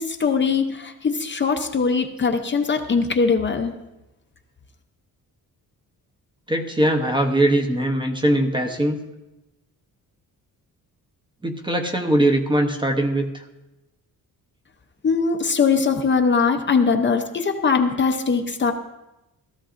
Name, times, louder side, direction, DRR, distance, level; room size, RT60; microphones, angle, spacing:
voice 1, 0.0-3.8 15.0-18.7, left 5 dB, 30° left, 5 dB, 0.6 m, -21 dB
voice 2, 6.5-9.0 11.4-13.4, right 1 dB, 15° right, 4 dB, 0.8 m, -21 dB
15.5 x 14.0 x 2.5 m, 0.97 s
wide cardioid pair, 165°, 36 cm